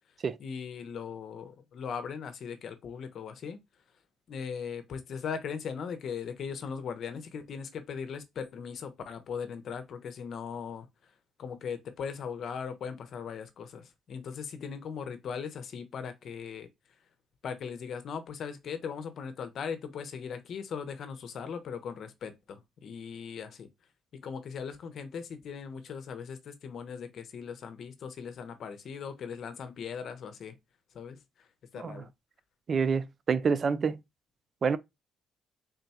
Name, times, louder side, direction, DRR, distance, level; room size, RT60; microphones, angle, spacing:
voice 1, 0.4-3.6 4.3-10.9 11.4-16.7 17.4-23.7 24.2-30.5 30.9-31.2 31.7-32.1, left 6 dB, 65° left, 0.7 m, -39 dB
voice 2, 32.7-34.0 34.6-34.8, right 5 dB, 45° right, 0.4 m, -27 dB
3.7 x 2.2 x 4.1 m
cardioid pair, 90°, 0 cm